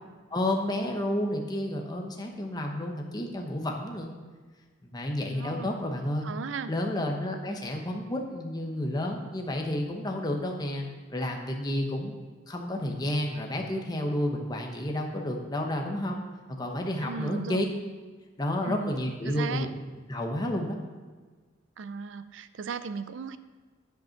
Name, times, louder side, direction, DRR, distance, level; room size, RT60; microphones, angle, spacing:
voice 1, 0.3-4.1 4.8-6.3 6.7-12.1 12.5-16.2 16.6-17.6 18.4-19.7 20.1-20.8, left 1 dB, 20° left, 1 dB, 0.9 m, -31 dB
voice 2, 5.3-5.7 6.2-6.7 17.0-17.6 18.6-18.9 19.3-19.7 21.8-23.4, right 5 dB, 65° right, 13 dB, 0.4 m, -36 dB
10.5 x 5.4 x 5.8 m, 1.4 s
head